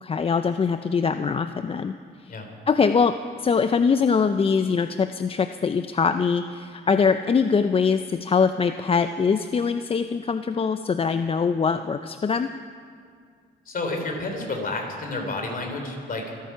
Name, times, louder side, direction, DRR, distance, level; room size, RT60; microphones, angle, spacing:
voice 1, 0.0-1.9 2.2-2.4 2.7-12.5, left 5 dB, 30° left, 10 dB, 0.5 m, -23 dB
voice 2, 13.7-16.2, left 2 dB, 45° left, 3 dB, 3.6 m, -30 dB
25.0 x 9.5 x 5.7 m, 2.1 s
cardioid pair, 90°, 20 cm